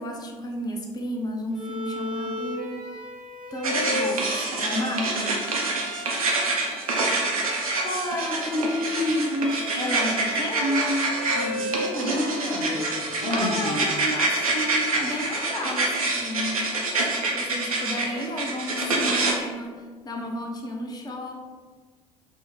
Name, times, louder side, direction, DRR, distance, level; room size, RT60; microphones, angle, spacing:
voice 1, 0.0-2.8 3.5-4.3 4.6-5.4 9.7-10.9 11.3-12.1 13.3-16.6 17.3-21.3, left 1 dB, 20° left, 1 dB, 0.5 m, -32 dB
Bowed string instrument, 1.5-14.1, equal, 45° right, 0.6 m, -35 dB
sound 1, 3.6-19.3, right 2 dB, 85° right, 0.4 m, -26 dB
voice 2, 7.7-9.6 10.6-11.0 12.0-13.8, left 1 dB, 85° left, -4 dB, 0.6 m, -27 dB
3.5 x 2.0 x 2.8 m, 1.4 s
figure-of-eight pair, 50°, 18 cm